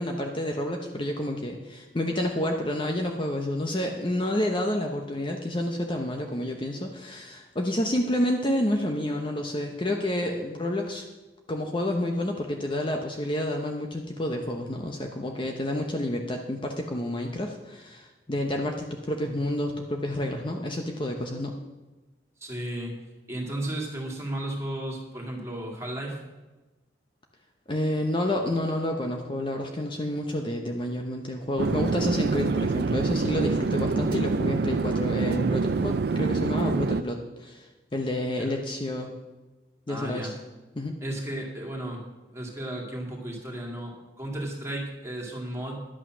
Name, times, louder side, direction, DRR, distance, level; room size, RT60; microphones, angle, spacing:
voice 1, 0.0-11.1 11.5-21.5 27.7-37.7 37.9-39.1 39.9-40.3 40.8-41.0, left 1 dB, 25° left, 2 dB, 0.8 m, -29 dB
voice 2, 22.4-26.2 38.4-38.5 39.9-40.3 41.0-45.8, right 1 dB, 15° right, -1 dB, 2.3 m, -34 dB
Chatter / Fixed-wing aircraft airplane, 31.6-37.0, right 4 dB, 60° right, 0.4 m, -26 dB
11.0 x 8.7 x 6.2 m, 1.2 s
head